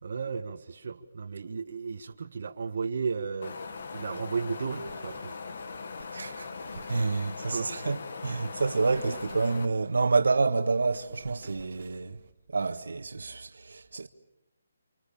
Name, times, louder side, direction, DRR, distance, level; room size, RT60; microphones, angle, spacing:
voice 1, 0.0-3.6 3.9-5.4 6.0-6.1 7.5-7.7, right 5 dB, 55° right, 1.7 m, -34 dB
Wind, 3.4-9.7, left 4 dB, 55° left, 1.9 m, -40 dB
Wind 2, 3.6-12.3, right 6 dB, 35° right, 3.1 m, -54 dB
voice 2, 6.1-6.5 6.9-12.2 12.5-14.1, right 4 dB, 85° right, 1.5 m, -28 dB
29.5 x 26.5 x 7.3 m
hypercardioid pair, 170°, 0 cm